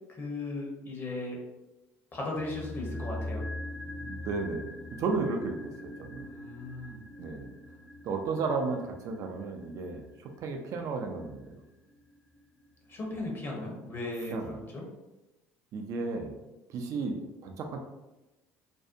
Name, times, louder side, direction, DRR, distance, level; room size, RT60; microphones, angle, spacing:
voice 1, 0.1-1.4 2.1-3.5 6.2-7.0 12.9-14.8, left 2 dB, 35° left, -1 dB, 0.8 m, -37 dB
sound 1, 2.4-12.6 12.9-13.0, left 1 dB, 10° left, 0.4 m, -43 dB
voice 2, 4.0-4.7 5.0-6.3 7.2-7.5 8.0-10.1 10.4-11.5 14.3-14.6 15.7-16.3 16.7-17.8, right 4 dB, 55° right, 3 dB, 0.4 m, -33 dB
2.5 x 2.0 x 2.5 m, 1.0 s
supercardioid pair, 85°, 7 cm